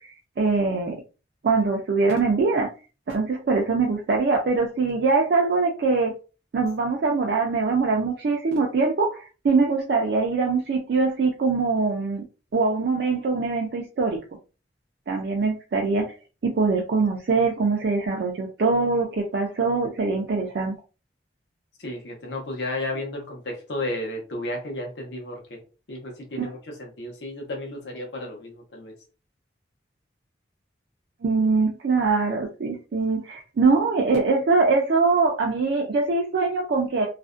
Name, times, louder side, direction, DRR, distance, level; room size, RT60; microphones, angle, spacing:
voice 1, 0.4-1.0 1.4-2.7 3.1-6.1 6.5-12.2 12.5-14.2 15.1-16.1 16.4-20.7 26.4-26.5 31.2-37.1, right 4 dB, 60° right, 0 dB, 0.4 m, -23 dB
voice 2, 21.8-25.6 25.9-28.9, left 1 dB, 70° left, 1 dB, 0.7 m, -33 dB
2.4 x 2.1 x 2.4 m, 0.34 s
head